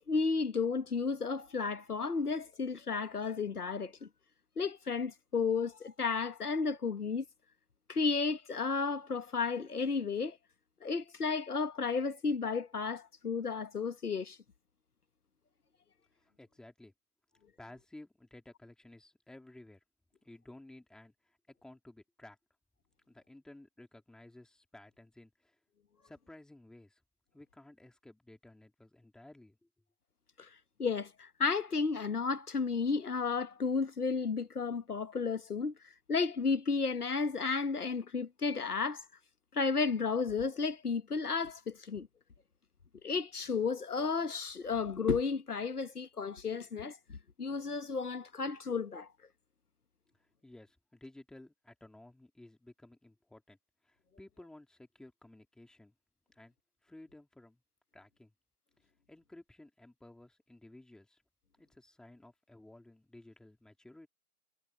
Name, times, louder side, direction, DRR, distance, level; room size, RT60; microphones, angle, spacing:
voice 1, 0.0-4.1 4.6-7.2 7.9-10.4 10.8-14.4 30.4-30.5 30.8-39.0 39.5-42.1 43.0-49.1, left 4 dB, 80° left, 1.4 m, -33 dB
voice 2, 16.2-16.9 17.6-19.8 20.2-22.4 23.1-25.6 26.0-27.0 27.3-29.7 50.2-53.6 53.8-55.9 56.3-56.6 56.8-57.6 57.9-58.3 58.8-61.2 61.6-64.1, left 1 dB, ahead, 3.7 m, -55 dB
figure-of-eight pair, 145°, 45 cm